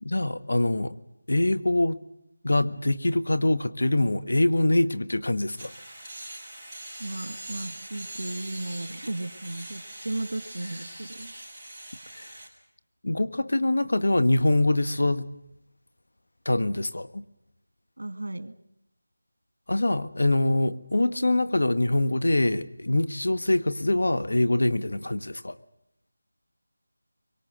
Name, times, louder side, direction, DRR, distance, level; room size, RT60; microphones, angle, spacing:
voice 1, 0.0-1.0 1.3-2.0 2.4-5.7 12.1-12.3 13.0-15.3 16.4-17.2 19.7-25.6, left 1 dB, 75° left, 11 dB, 1.5 m, -24 dB
sound 1, 5.6-12.5, right 1 dB, 5° right, 6.0 m, -42 dB
voice 2, 7.0-11.3 18.0-18.6, right 2 dB, 75° right, 10 dB, 1.9 m, -35 dB
24.0 x 23.5 x 7.9 m, 0.79 s
figure-of-eight pair, 170°, 0 cm